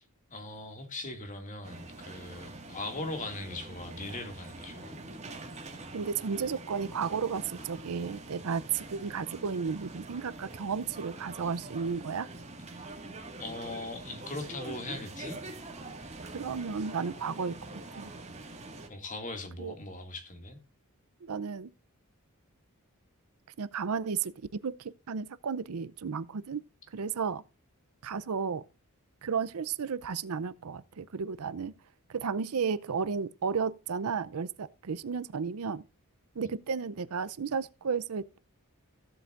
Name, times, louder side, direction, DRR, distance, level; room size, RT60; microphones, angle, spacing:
voice 1, 0.3-5.0 12.8-12.9 13.4-15.4 18.9-20.6, left 2 dB, 35° left, 2.2 m, -40 dB
sound 1, 1.6-18.9, right 2 dB, 30° right, 1.8 m, -45 dB
voice 2, 5.9-12.3 16.3-17.7 18.0-18.1 19.6-19.7 21.2-21.7 23.6-26.6 26.9-27.4 28.0-28.6 29.2-31.7 32.1-35.8 36.4-38.4, right 6 dB, 80° right, 0.6 m, -33 dB
16.0 x 7.8 x 2.5 m
head